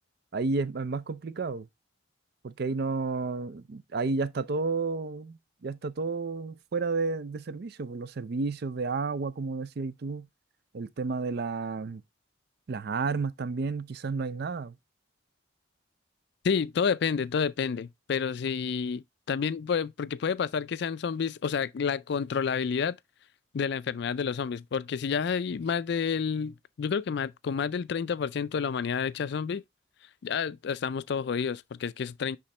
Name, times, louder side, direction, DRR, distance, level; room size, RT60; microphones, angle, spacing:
voice 1, 0.3-1.7 2.4-10.3 10.7-12.0 12.7-14.8, right 4 dB, 55° right, 0.4 m, -31 dB
voice 2, 16.4-23.0 23.5-29.6 30.2-32.4, left 6 dB, 55° left, 0.4 m, -29 dB
10.0 x 3.7 x 3.1 m
head